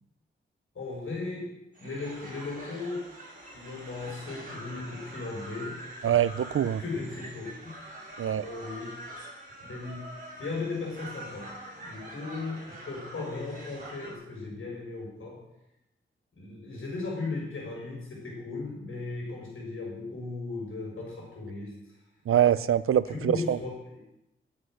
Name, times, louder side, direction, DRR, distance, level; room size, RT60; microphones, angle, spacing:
voice 1, 0.7-3.1 3.5-5.8 6.0-6.2 6.8-7.7 8.3-8.9 9.7-10.1 10.4-15.4 16.3-21.7 22.3-22.4 23.1-24.0, left 3 dB, 75° left, -2 dB, 6.2 m, -37 dB
sound 1, 1.7-14.1, right 1 dB, 40° right, 5.1 m, -45 dB
voice 2, 6.0-6.8 8.2-8.5 22.3-23.6, right 10 dB, 90° right, 17 dB, 0.5 m, -24 dB
14.0 x 8.1 x 6.4 m, 0.89 s
wide cardioid pair, 120°, 21 cm